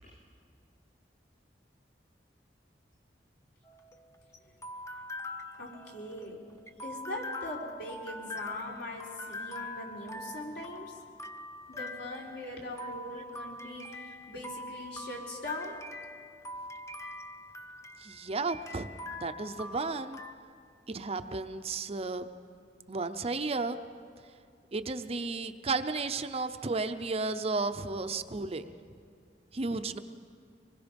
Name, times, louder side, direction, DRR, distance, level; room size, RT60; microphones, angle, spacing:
sound 1, 3.7-20.3, left 2 dB, 15° left, 0.8 m, -43 dB
voice 1, 5.6-6.4 6.8-11.0 11.7-15.7, left 1 dB, 65° left, -3 dB, 4.2 m, -41 dB
voice 2, 18.0-18.9 19.2-20.2 20.9-22.2 22.9-23.8 24.7-28.7 29.5-30.0, right 3 dB, 35° right, 9 dB, 0.7 m, -33 dB
25.0 x 21.0 x 5.3 m, 2.3 s
head